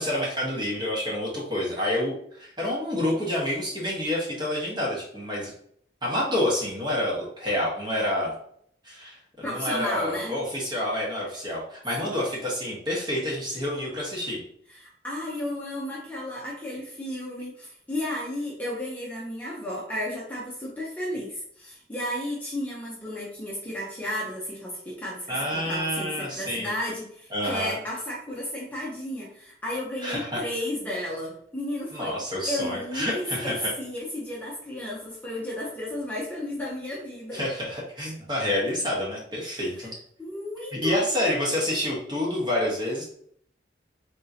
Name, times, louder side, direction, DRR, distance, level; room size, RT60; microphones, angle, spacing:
voice 1, 0.0-5.5 6.0-8.3 8.8-14.4 25.3-26.7 27.3-27.8 30.0-30.4 31.9-33.7 37.3-39.9 40.7-43.0, left 1 dB, 25° right, -4 dB, 1.2 m, -28 dB
voice 2, 9.4-10.4 12.0-12.1 14.7-32.1 32.5-37.4 39.5-39.6 40.2-41.0, left 1 dB, 10° left, -6 dB, 0.8 m, -33 dB
3.9 x 3.6 x 2.8 m, 0.64 s
head